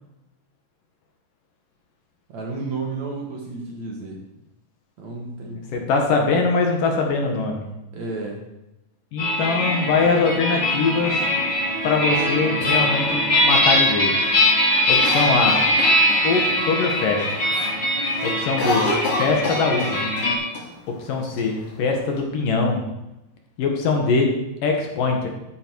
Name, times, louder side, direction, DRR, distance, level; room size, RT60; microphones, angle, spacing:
voice 1, 2.3-4.2 5.0-5.9 7.9-8.4, right 3 dB, 55° right, 0 dB, 2.7 m, -32 dB
voice 2, 5.7-7.7 9.1-11.3 11.8-14.3 14.9-15.6 16.2-17.4 18.2-18.9 19.2-20.1 20.9-22.9 23.6-24.3 24.6-25.3, left 4 dB, 65° left, 2 dB, 3.0 m, -22 dB
sound 1, 9.2-20.4, left 1 dB, 30° left, 4.5 m, -21 dB
Cough, 15.0-16.5 16.9-17.0 17.3-17.7 18.0-20.3 20.5-20.6 21.4-22.2, left 2 dB, 85° left, 4.8 m, -27 dB
13.0 x 9.5 x 4.7 m, 0.92 s
omnidirectional pair, 4.5 m